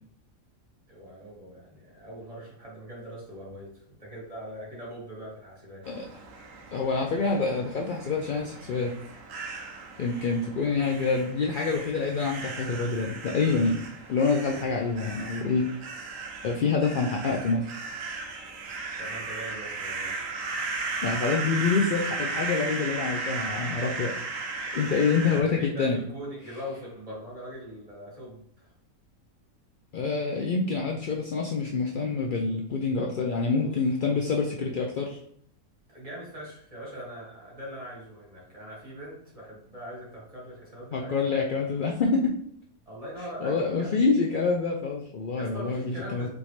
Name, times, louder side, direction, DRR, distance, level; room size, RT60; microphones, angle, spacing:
voice 1, 0.9-5.9 19.0-20.2 25.3-28.7 33.3-33.7 34.1-34.3 34.6-34.7 35.9-41.7 42.8-44.0 45.4-46.3, equal, 25° right, -5 dB, 1.5 m, -41 dB
sound 1, 5.8-25.4, right 3 dB, 70° right, 1.0 m, -36 dB
voice 2, 6.7-8.9 10.0-13.8 14.1-15.7 16.4-17.7 21.0-24.1 24.7-26.0 29.9-35.1 40.9-42.3 43.4-46.3, left 4 dB, 85° left, 0 dB, 0.4 m, -26 dB
4.0 x 3.5 x 3.1 m, 0.66 s
omnidirectional pair, 1.5 m